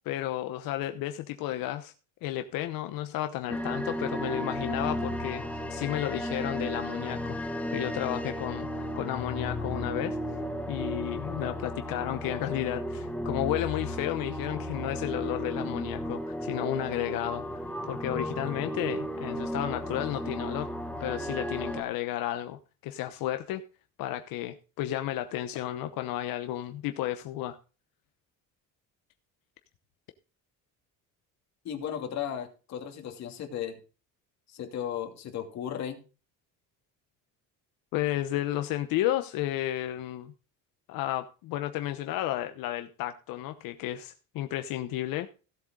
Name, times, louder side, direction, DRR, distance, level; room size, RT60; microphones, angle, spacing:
voice 1, 0.0-1.9 2.2-7.4 7.7-10.2 10.7-17.4 17.9-20.7 21.0-23.6 24.0-27.6 37.9-40.3 40.9-45.3, left 13 dB, 90° left, 1.0 m, -32 dB
sound 1, 3.5-21.8, equal, 5° left, 0.9 m, -34 dB
voice 2, 31.6-33.8 34.5-36.0, left 9 dB, 50° left, 2.7 m, -35 dB
16.5 x 7.9 x 3.8 m
cardioid pair, 170°, 34 cm